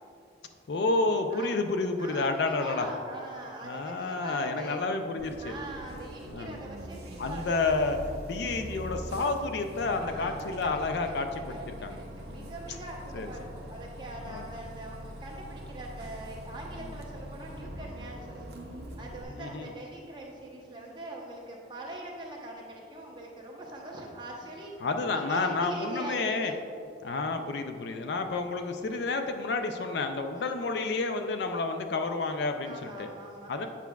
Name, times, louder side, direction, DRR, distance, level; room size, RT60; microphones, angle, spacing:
voice 1, 0.7-2.9 3.6-5.5 6.3-6.5 7.2-8.0 8.2-12.0 12.3-12.5 13.1-13.3 14.2-14.5 16.8-16.9 19.4-19.7 24.8-26.5 27.0-33.1 33.5-33.7, left 3 dB, 60° left, 7 dB, 0.4 m, -30 dB
voice 2, 2.0-4.8 5.4-7.6 10.0-10.8 11.1-11.2 11.5-18.4 19.0-24.7 25.1-26.6 30.3-30.5 32.6-33.7, right 1 dB, 25° right, -2 dB, 0.8 m, -42 dB
Bus, 5.2-19.2, right 1 dB, 55° right, 0.6 m, -43 dB
8.2 x 5.7 x 2.3 m, 2.4 s
head